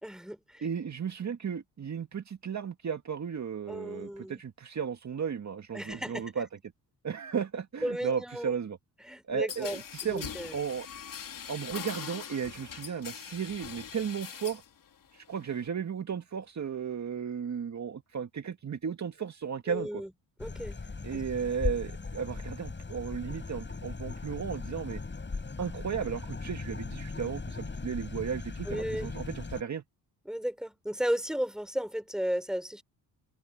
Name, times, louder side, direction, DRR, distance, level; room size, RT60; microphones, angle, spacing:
voice 1, 0.0-0.6 3.7-4.4 5.7-6.3 7.8-8.5 9.0-10.5 19.7-20.1 20.4-20.8 28.7-29.1 30.3-32.8, equal, ahead, 3.7 m, -34 dB
voice 2, 0.6-6.5 7.0-8.8 9.3-10.9 11.5-14.6 15.1-19.9 21.0-25.0 25.6-29.8, right 7 dB, 40° right, 2.1 m, -35 dB
sound 1, 9.5-14.7 15.0-15.7, left 8 dB, 50° left, 3.4 m, -42 dB
sound 2, 20.4-29.6, left 4 dB, 25° left, 7.7 m, -38 dB
supercardioid pair, 70°, 40 cm